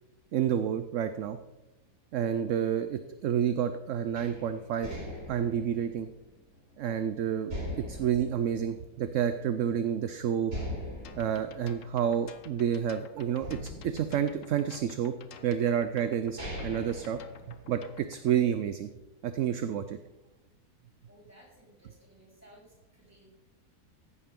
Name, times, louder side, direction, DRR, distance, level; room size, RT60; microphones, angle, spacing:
voice 1, 0.3-1.4 2.1-4.9 5.3-6.1 6.8-7.5 7.9-10.5 11.2-15.1 15.4-17.2 17.5-18.9 19.2-20.0, right 9 dB, 65° right, 10 dB, 0.8 m, -29 dB
sound 1, 4.2-7.0 7.5-9.4 9.8-9.9 10.5-12.9 13.4-15.0 15.7-15.8 16.2-18.0, equal, 40° right, 3.9 m, -41 dB
sound 2, 11.0-18.4, left 7 dB, 60° left, 1.1 m, -52 dB
voice 2, 21.1-23.3, right 1 dB, 10° right, -5 dB, 4.3 m, -58 dB
14.5 x 11.0 x 3.7 m, 0.96 s
omnidirectional pair, 1.7 m